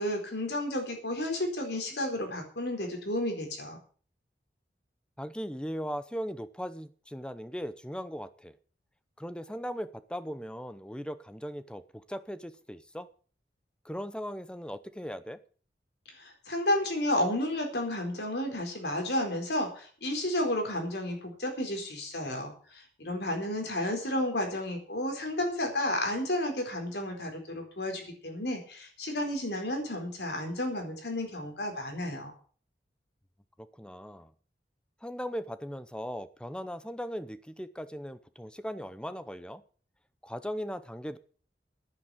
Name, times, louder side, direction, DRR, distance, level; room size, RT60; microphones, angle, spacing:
voice 1, 0.0-3.8 16.1-32.3, left 1 dB, 75° left, 3 dB, 4.3 m, -32 dB
voice 2, 5.2-8.5 9.2-11.8 12.1-13.1 13.8-15.4 33.8-34.3 35.0-39.6 40.2-41.2, equal, 5° left, 13 dB, 0.7 m, -38 dB
10.5 x 9.4 x 7.9 m, 0.44 s
head